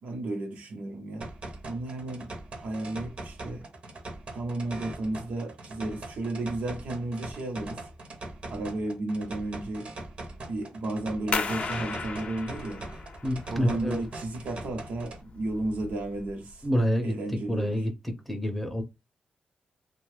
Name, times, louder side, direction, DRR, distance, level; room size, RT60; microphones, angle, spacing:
voice 1, 0.0-1.3 1.6-2.3 2.6-3.7 4.3-7.8 8.5-9.9 10.5-12.9 13.5-16.7 17.0-17.9, right 2 dB, 80° right, 0.8 m, -33 dB
sound 1, 1.2-15.2, right 2 dB, 50° right, 0.8 m, -41 dB
sound 2, 11.3-16.7, left 4 dB, 55° left, 0.5 m, -36 dB
voice 2, 13.2-14.0 16.6-17.1 17.5-18.8, equal, 5° left, 0.6 m, -27 dB
2.7 x 2.3 x 3.2 m
cardioid pair, 110°, 3 cm